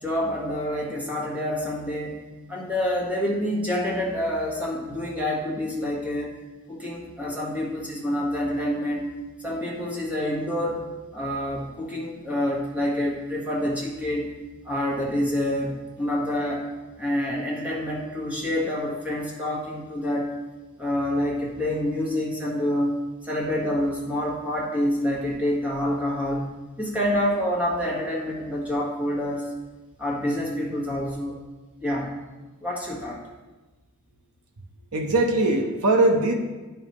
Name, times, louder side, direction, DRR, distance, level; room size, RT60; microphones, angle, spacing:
voice 1, 0.0-2.2 2.5-6.4 6.7-9.1 9.4-10.8 11.1-14.3 14.6-16.6 17.0-20.3 20.8-26.5 26.8-29.5 30.0-31.4 31.8-32.1 32.6-33.2, left 1 dB, 5° right, -4 dB, 1.4 m, -27 dB
voice 2, 34.9-36.3, right 2 dB, 85° right, 3 dB, 0.8 m, -20 dB
10.5 x 5.6 x 3.1 m, 1.2 s
head